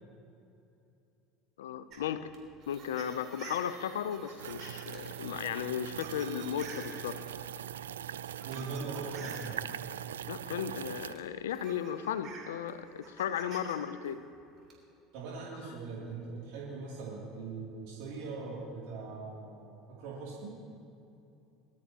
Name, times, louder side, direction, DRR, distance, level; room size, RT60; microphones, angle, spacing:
voice 1, 1.6-2.3 2.7-7.2 10.3-14.2, left 9 dB, 80° left, 13 dB, 0.6 m, -35 dB
sound 1, 1.9-7.4 8.1-9.5 10.7-10.8 11.2-13.8 14.1-14.7, right 4 dB, 50° right, 4.0 m, -50 dB
sound 2, 4.4-11.1, right 10 dB, 85° right, 0.3 m, -41 dB
voice 2, 8.4-9.6 15.1-20.6, right 4 dB, 65° right, -6 dB, 2.9 m, -41 dB
23.0 x 13.0 x 3.0 m, 2.8 s
hypercardioid pair, 80°, 0 cm